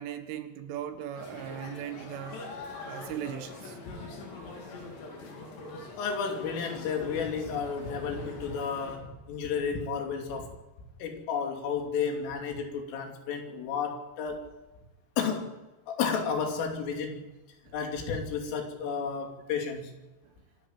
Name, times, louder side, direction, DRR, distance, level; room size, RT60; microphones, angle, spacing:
voice 1, 0.0-2.4 2.9-3.8 17.7-17.8, right 10 dB, 80° right, 8 dB, 4.1 m, -38 dB
sound 1, 1.1-9.0, left 3 dB, 60° left, 5.7 m, -43 dB
voice 2, 6.0-10.5 11.0-14.5 15.2-15.6 15.9-17.3 17.7-19.9, left 6 dB, 90° left, 3 dB, 5.5 m, -32 dB
25.5 x 12.0 x 9.0 m, 1.1 s
omnidirectional pair, 5.6 m